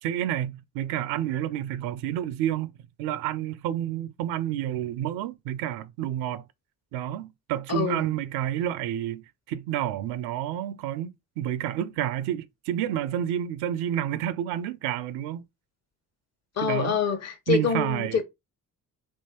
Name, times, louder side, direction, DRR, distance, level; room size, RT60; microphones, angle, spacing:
voice 1, 0.0-2.7 3.0-6.4 6.9-15.4 16.6-16.9 17.5-18.2, right 11 dB, 85° right, 0.5 m, -29 dB
voice 2, 7.7-8.1 16.6-18.2, left 6 dB, 40° left, 1.0 m, -26 dB
3.6 x 3.0 x 4.2 m
supercardioid pair, 50°, 39 cm